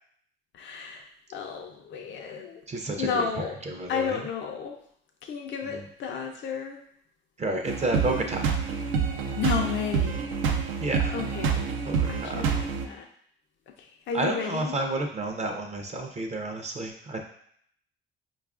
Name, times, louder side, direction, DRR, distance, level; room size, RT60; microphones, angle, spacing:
voice 1, 0.5-1.0 1.3-2.6 3.0-3.5 3.9-4.8 5.2-6.8 9.4-10.2 11.1-11.7 12.1-13.0 14.1-14.7, left 6 dB, 65° left, 2 dB, 0.5 m, -32 dB
voice 2, 2.7-3.3 3.6-4.2 5.6-5.8 7.4-8.5 10.8-11.1 11.8-12.6 14.1-17.2, right 2 dB, 35° right, 3 dB, 0.5 m, -31 dB
sound 1, 7.7-12.9, right 6 dB, 85° right, 0.4 m, -27 dB
4.6 x 2.4 x 2.4 m, 0.65 s
cardioid pair, 90°, 20 cm